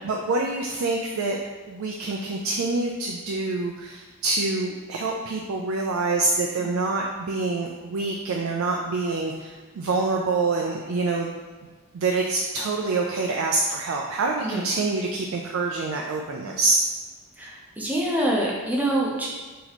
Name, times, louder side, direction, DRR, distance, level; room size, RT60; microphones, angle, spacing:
voice 1, 0.0-1.4 1.7-11.3 11.9-16.8, right 3 dB, 70° right, 0 dB, 0.3 m, -26 dB
voice 2, 17.4-19.3, right 1 dB, 10° right, -4 dB, 0.6 m, -26 dB
2.9 x 2.8 x 4.1 m, 1.4 s
head